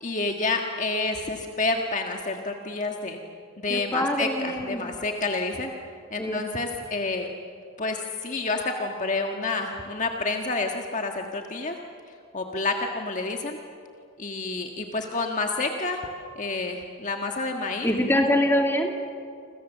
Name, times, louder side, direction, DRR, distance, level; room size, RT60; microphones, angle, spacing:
voice 1, 0.0-3.2 3.6-5.7 6.1-7.3 7.8-11.8 12.3-13.6 14.2-16.0 16.3-17.9, left 3 dB, 35° left, 2 dB, 1.6 m, -29 dB
voice 2, 3.7-4.8 6.2-6.4 17.8-18.9, left 1 dB, 10° left, 2 dB, 2.4 m, -24 dB
29.0 x 26.5 x 7.4 m, 2.4 s
head